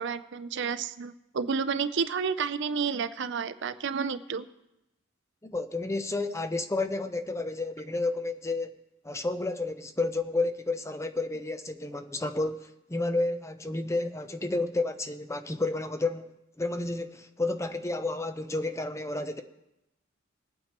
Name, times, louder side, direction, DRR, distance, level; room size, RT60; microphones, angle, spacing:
voice 1, 0.0-4.5, right 6 dB, 60° right, 0.5 m, -30 dB
voice 2, 5.4-8.8 9.0-19.4, left 2 dB, 15° left, 0.6 m, -31 dB
21.0 x 8.8 x 3.0 m
head